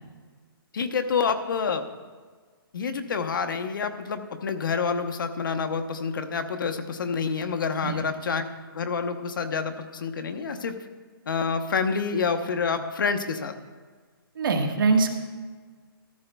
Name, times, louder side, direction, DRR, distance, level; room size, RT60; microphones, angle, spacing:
voice 1, 0.7-1.9 2.7-8.4 8.7-10.8 11.3-13.6, left 5 dB, 60° left, 7 dB, 0.9 m, -28 dB
voice 2, 14.4-15.1, right 4 dB, 60° right, 3 dB, 1.5 m, -22 dB
14.0 x 13.0 x 2.3 m, 1.5 s
hypercardioid pair, 170°, 12 cm